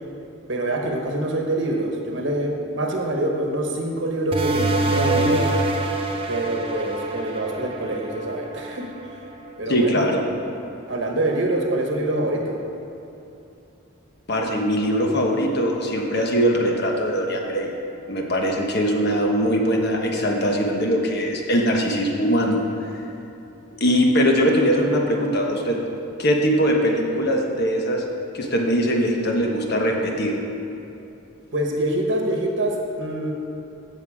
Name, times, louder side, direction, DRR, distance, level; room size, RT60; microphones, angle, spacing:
voice 1, 0.5-5.5 6.3-8.9 9.6-10.2 10.9-12.6 31.5-33.3, right 1 dB, 60° right, 1 dB, 1.1 m, -25 dB
sound 1, 4.3-9.5, right 2 dB, 25° right, 0.7 m, -25 dB
voice 2, 9.7-10.2 14.3-17.7 18.1-22.6 23.8-25.8 26.2-28.0 28.3-30.3, equal, 50° left, 1 dB, 1.3 m, -21 dB
15.0 x 5.8 x 4.9 m, 2.9 s
head